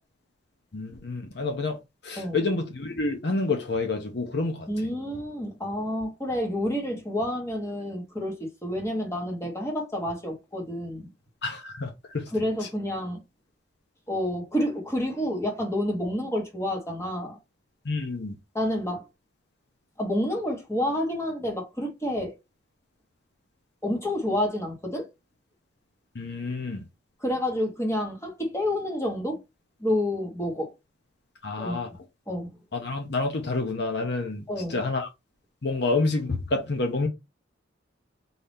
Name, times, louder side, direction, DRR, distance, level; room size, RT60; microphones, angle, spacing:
voice 1, 0.7-1.8 2.0-4.7 11.4-12.3 17.8-18.3 26.1-26.8 31.4-31.9 32.7-34.4 34.7-35.1 35.6-37.1, left 3 dB, 60° left, 0.8 m, -28 dB
voice 2, 4.7-11.1 12.3-13.2 14.1-17.4 18.5-19.0 20.0-22.3 23.8-25.1 27.2-29.4 29.8-30.7 31.6-31.8 32.3-32.5 34.5-34.8, left 1 dB, 15° left, 1.3 m, -29 dB
4.0 x 2.8 x 3.5 m
head